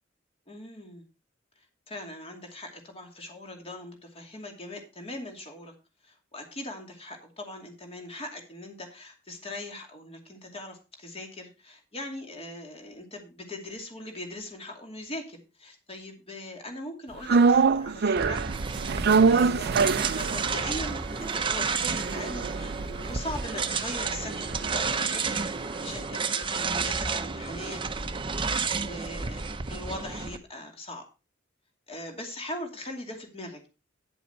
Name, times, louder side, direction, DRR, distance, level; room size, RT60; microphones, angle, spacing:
voice 1, 0.5-1.0 1.9-5.7 6.0-18.4 19.3-25.4 25.8-28.1 28.8-29.4 29.7-31.0 31.9-33.7, left 1 dB, 30° left, 3 dB, 2.5 m, -40 dB
sound 1, 17.3-25.6 25.9-26.0, right 5 dB, 55° right, 0.5 m, -26 dB
sound 2, 18.2-30.4, right 5 dB, 25° right, 0.8 m, -31 dB
9.8 x 7.9 x 4.4 m, 0.30 s
head